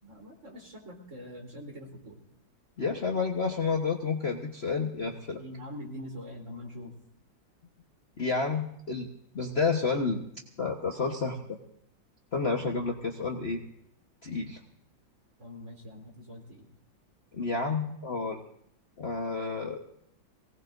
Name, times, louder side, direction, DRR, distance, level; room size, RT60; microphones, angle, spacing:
voice 1, 0.0-2.2 5.4-6.9 15.4-16.7, left 1 dB, 35° right, -1 dB, 4.0 m, -44 dB
voice 2, 2.8-5.4 8.2-9.1 9.3-10.2 10.6-11.4 12.3-13.6 14.2-14.6 17.3-18.4 19.0-19.8, left 4 dB, 35° left, 0 dB, 1.3 m, -30 dB
23.5 x 18.5 x 2.6 m, 0.75 s
omnidirectional pair, 2.2 m